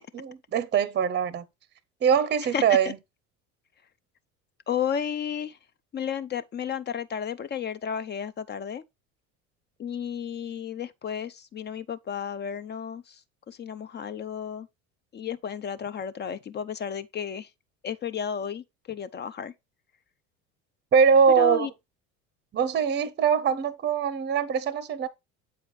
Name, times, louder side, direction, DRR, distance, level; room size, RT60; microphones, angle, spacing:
voice 1, 0.1-1.5 2.0-3.0 20.9-21.7 22.5-25.1, right 7 dB, 25° right, 0.6 m, -22 dB
voice 2, 4.7-5.6 5.9-8.8 9.8-13.2 13.5-14.7 15.1-17.5 17.8-19.5 21.4-21.7, left 7 dB, 25° left, 0.4 m, -32 dB
7.8 x 4.9 x 3.2 m
hypercardioid pair, 75°, 41 cm